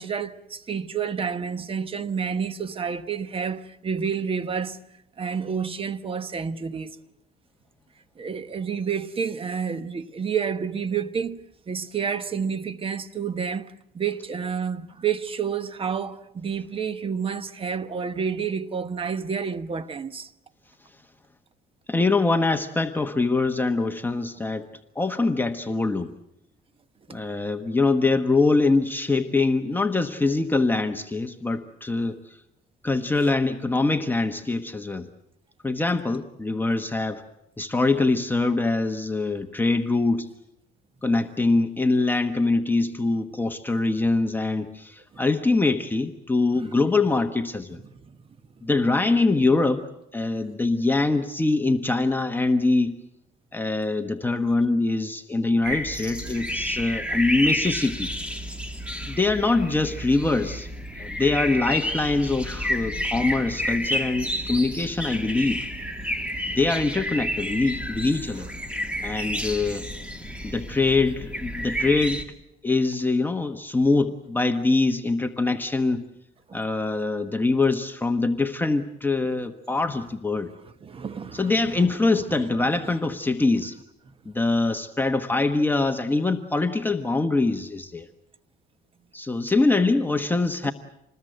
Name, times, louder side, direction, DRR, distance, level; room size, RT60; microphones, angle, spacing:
voice 1, 0.0-4.8 5.2-7.0 8.2-20.3 27.1-27.2 46.5-46.7 47.9-48.2 80.8-81.9 82.1-82.9, right 6 dB, 35° right, 1.2 m, -30 dB
voice 2, 21.9-24.7 24.9-26.1 27.1-32.4 32.8-35.1 35.6-37.2 37.6-40.3 41.0-47.8 48.6-49.9 50.1-53.0 53.5-58.1 59.1-60.7 60.9-65.6 66.5-68.5 69.0-69.8 70.4-72.2 72.6-76.0 76.5-80.5 81.3-83.8 84.3-88.1 89.1-90.7, left 3 dB, 10° left, 1.1 m, -23 dB
sound 1, 55.6-72.2, equal, 5° right, 2.5 m, -30 dB
27.0 x 20.5 x 7.9 m
cardioid pair, 110°, 17 cm